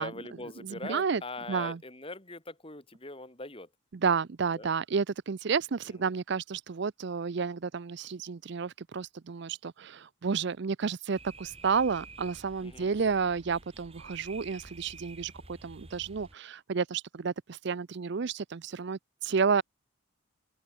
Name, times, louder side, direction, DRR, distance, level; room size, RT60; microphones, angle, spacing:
voice 1, 0.0-3.7 4.5-4.7 5.9-6.2 12.6-12.9, left 2 dB, 25° left, 3.1 m, -42 dB
voice 2, 0.6-1.2 1.5-1.8 4.0-19.6, right 5 dB, 55° right, 0.5 m, -31 dB
sound 1, 11.1-16.3, right 3 dB, 30° right, 5.7 m, -50 dB
open air
head